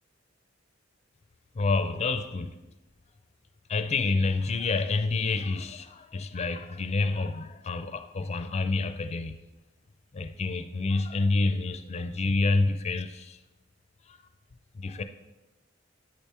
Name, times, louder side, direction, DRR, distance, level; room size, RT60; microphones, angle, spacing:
voice 1, 1.5-2.5 3.7-9.4 10.1-13.4 14.1-14.2 14.7-15.0, left 3 dB, 35° left, 0.4 m, -28 dB
8.5 x 3.5 x 4.3 m
head